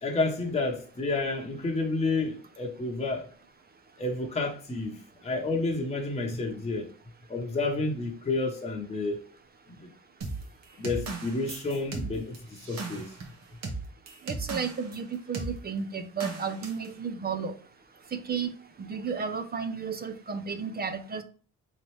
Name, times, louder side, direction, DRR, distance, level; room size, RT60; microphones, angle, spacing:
voice 1, 0.0-3.3 4.0-6.9 7.3-9.2 9.8-9.9 10.8-13.1, left 3 dB, 20° left, 1.0 m, -30 dB
sound 1, 10.2-15.0 15.3-15.6 16.2-16.9, right 3 dB, 60° right, 1.1 m, -37 dB
voice 2, 14.3-17.5 18.3-18.5 18.8-21.2, right 6 dB, 30° right, 0.5 m, -33 dB
4.0 x 3.2 x 3.1 m
cardioid pair, 90°, 30 cm